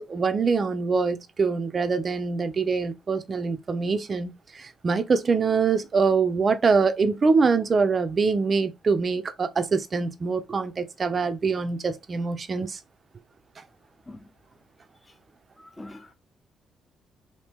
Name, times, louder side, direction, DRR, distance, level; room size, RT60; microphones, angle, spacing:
voice 1, 0.0-12.8, right 4 dB, 40° right, 0.5 m, -24 dB
voice 2, 15.6-16.1, left 1 dB, 15° left, 0.9 m, -43 dB
2.9 x 2.7 x 3.5 m
cardioid pair, 90°, 0 cm